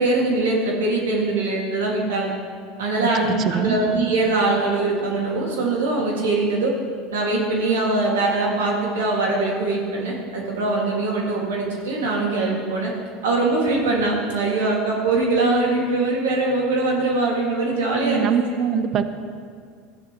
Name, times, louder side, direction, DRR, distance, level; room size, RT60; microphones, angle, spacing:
voice 1, 0.0-2.3 2.8-6.7 7.1-12.9 13.2-18.4, right 2 dB, 90° right, -2 dB, 1.9 m, -22 dB
voice 2, 3.0-3.8 18.0-19.0, right 8 dB, 45° right, 10 dB, 0.7 m, -24 dB
13.5 x 10.0 x 3.0 m, 2.1 s
hypercardioid pair, 95°, 0 cm